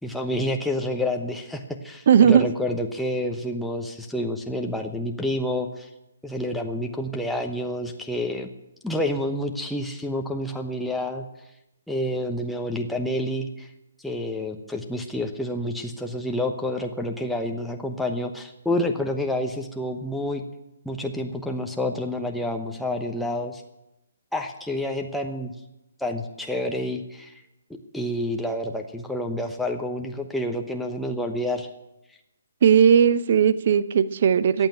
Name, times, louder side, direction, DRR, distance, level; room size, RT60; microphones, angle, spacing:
voice 1, 0.0-5.9 6.2-8.5 8.8-11.2 11.9-13.7 14.0-20.4 20.8-23.6 24.3-25.5 26.0-27.4 27.9-31.7, left 1 dB, ahead, 2 dB, 1.0 m, -28 dB
voice 2, 2.1-2.5 32.6-34.7, right 8 dB, 45° right, 15 dB, 0.8 m, -17 dB
14.5 x 9.1 x 9.2 m, 0.93 s
figure-of-eight pair, 130°, 0 cm